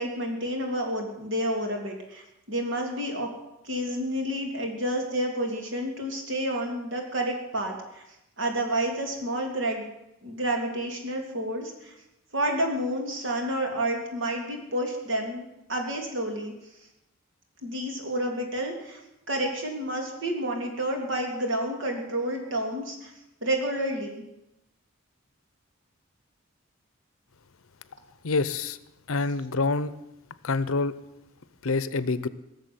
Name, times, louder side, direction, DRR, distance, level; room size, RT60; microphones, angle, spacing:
voice 1, 0.0-3.3 3.6-8.0 8.4-9.9 10.2-11.9 12.3-16.5 17.6-19.0 19.3-23.1 23.4-24.2, right 1 dB, 65° right, 2 dB, 3.2 m, -30 dB
voice 2, 28.2-28.8 29.1-29.9 30.4-31.0 31.6-32.3, left 3 dB, 85° left, 16 dB, 0.8 m, -26 dB
18.0 x 7.0 x 9.6 m, 0.89 s
head